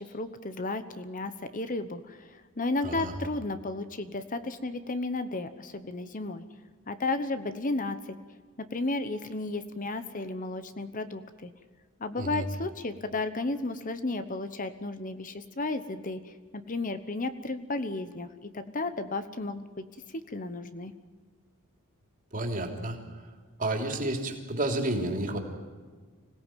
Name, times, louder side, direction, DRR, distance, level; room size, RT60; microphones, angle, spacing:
voice 1, 0.0-6.4 6.9-8.2 8.6-11.5 12.0-20.9, left 2 dB, 35° left, 11 dB, 1.0 m, -33 dB
voice 2, 22.3-23.0 23.6-25.4, right 1 dB, 40° right, 3 dB, 3.2 m, -30 dB
25.0 x 17.5 x 9.2 m, 1.5 s
head